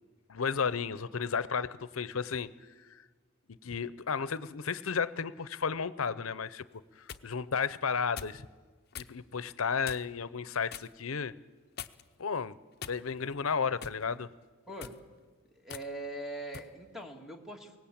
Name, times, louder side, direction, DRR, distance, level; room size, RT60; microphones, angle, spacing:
voice 1, 0.3-2.5 3.6-6.6 7.0-8.5 9.0-11.3 12.2-12.6 12.9-14.3, left 6 dB, 85° left, 16 dB, 0.7 m, -33 dB
sound 1, 6.7-7.3 8.2-8.4 8.9-9.1 9.8-10.2 10.7-10.9 11.8-12.2 12.8-13.3 13.8-14.0 14.7-15.0 15.7-15.9 16.5-16.7, left 8 dB, 50° left, 0.7 m, -44 dB
voice 2, 14.7-15.0 15.5-17.8, right 1 dB, ahead, 3 dB, 2.2 m, -42 dB
22.5 x 18.0 x 8.7 m, 1.4 s
head